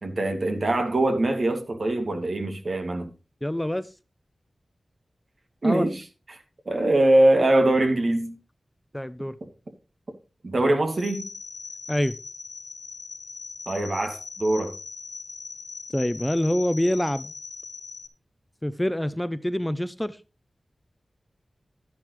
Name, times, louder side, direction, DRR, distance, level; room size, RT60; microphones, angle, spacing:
voice 1, 0.0-3.1 5.6-6.4 6.7-8.4 10.4-11.3 13.7-14.7, right 1 dB, 60° right, 5 dB, 2.4 m, -23 dB
voice 2, 3.4-3.9 5.6-5.9 8.9-9.3 11.9-12.1 15.9-17.3 18.6-20.2, left 1 dB, 10° left, 14 dB, 0.7 m, -26 dB
sound 1, 10.9-18.1, left 4 dB, 80° left, 1.0 m, -40 dB
11.5 x 10.5 x 3.2 m, 0.31 s
cardioid pair, 45°, 0 cm